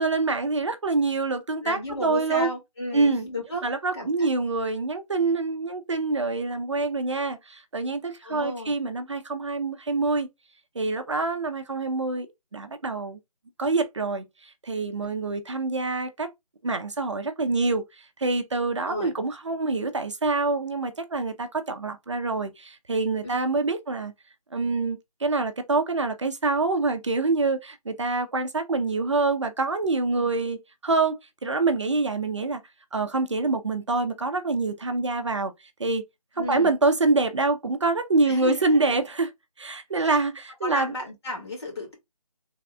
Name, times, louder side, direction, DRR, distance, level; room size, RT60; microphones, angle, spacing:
voice 1, 0.0-2.5 2.9-3.3 3.6-10.3 10.8-12.3 12.5-13.2 13.6-16.3 16.6-24.1 24.5-32.6 32.9-35.5 35.8-36.0 36.4-39.3 39.6-40.9, right 3 dB, 50° right, 0.6 m, -26 dB
voice 2, 1.6-3.7 3.9-4.3 8.2-8.7 18.8-19.1 23.2-23.4 30.1-30.3 36.4-36.7 38.2-39.0 40.0-40.2 40.6-41.9, left 1 dB, 40° left, 1.9 m, -33 dB
3.4 x 2.4 x 3.3 m
figure-of-eight pair, 160°, 20 cm